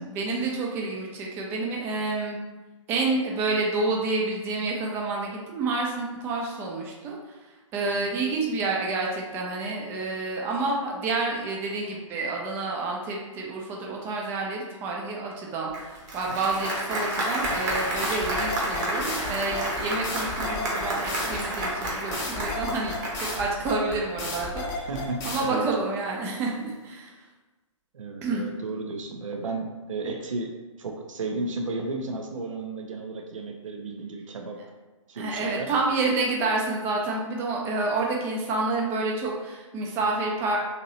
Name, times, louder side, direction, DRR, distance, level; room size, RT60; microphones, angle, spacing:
voice 1, 0.0-2.4 2.9-7.2 7.7-24.9 25.2-27.1 28.2-28.4 35.2-40.6, right 3 dB, 15° right, -1 dB, 0.3 m, -29 dB
Applause, 15.7-23.6, right 1 dB, 35° right, 0.7 m, -30 dB
sound 1, 17.4-25.4, left 3 dB, 20° left, 0.7 m, -34 dB
voice 2, 24.7-25.7 27.9-34.6 35.1-35.7, right 3 dB, 75° right, 3 dB, 0.5 m, -33 dB
2.9 x 2.7 x 2.7 m, 1.2 s
figure-of-eight pair, 130°, 17 cm